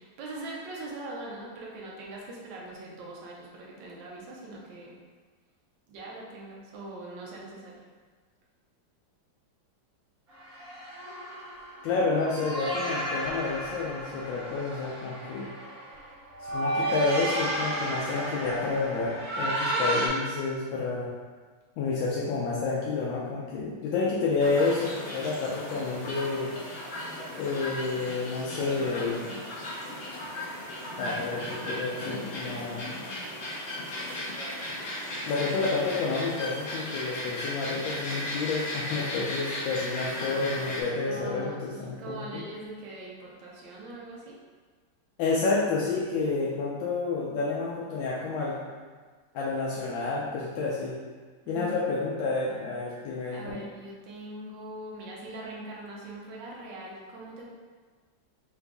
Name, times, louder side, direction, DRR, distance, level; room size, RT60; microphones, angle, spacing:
voice 1, 0.0-4.9 5.9-7.9 41.0-44.4 51.4-52.0 53.3-57.5, right 2 dB, 75° right, -3 dB, 1.3 m, -42 dB
sound 1, 10.3-20.1, right 1 dB, 50° right, 1.7 m, -32 dB
voice 2, 11.8-15.5 16.5-21.1 21.8-26.5 27.4-29.4 30.9-32.9 35.2-42.4 45.2-48.6 49.3-51.0 51.5-53.6, left 3 dB, 80° left, -5 dB, 1.3 m, -30 dB
sound 2, 24.4-40.8, left 1 dB, 65° left, 0.6 m, -36 dB
3.9 x 2.6 x 3.4 m, 1.4 s
omnidirectional pair, 2.1 m